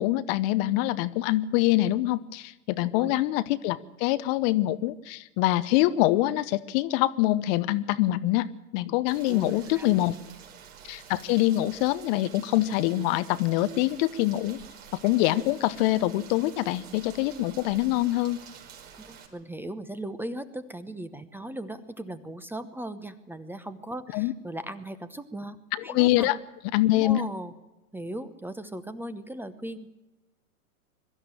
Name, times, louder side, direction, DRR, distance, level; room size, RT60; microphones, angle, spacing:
voice 1, 0.0-8.5 8.7-10.1 10.8-14.6 15.0-18.4 24.1-24.3 25.7-26.4 26.7-27.2, left 16 dB, 40° left, 14 dB, 0.9 m, -25 dB
Rain, 9.1-19.3, right 7 dB, 60° right, 5.1 m, -49 dB
voice 2, 9.3-10.2 19.0-25.6 25.8-26.3 27.0-27.5 27.9-29.9, right 1 dB, 5° right, 12 dB, 0.9 m, -38 dB
22.5 x 13.0 x 8.9 m, 1.0 s
hypercardioid pair, 110°, 45 cm